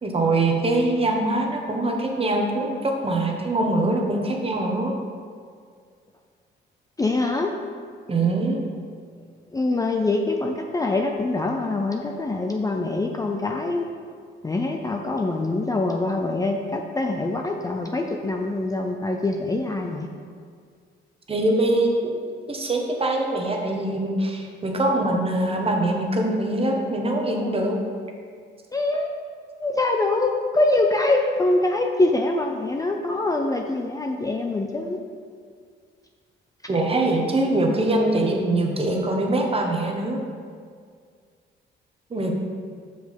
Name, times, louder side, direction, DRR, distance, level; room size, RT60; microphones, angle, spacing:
voice 1, 0.0-4.9 8.1-8.6 21.3-21.9 22.5-27.8 36.7-40.2 42.1-42.3, right 2 dB, 30° right, 1 dB, 1.1 m, -23 dB
voice 2, 7.0-7.5 9.5-13.8 14.4-20.1 28.7-29.1 29.6-35.0, left 2 dB, 15° left, 2 dB, 0.5 m, -24 dB
6.1 x 5.2 x 5.2 m, 2.1 s
cardioid pair, 90°, 20 cm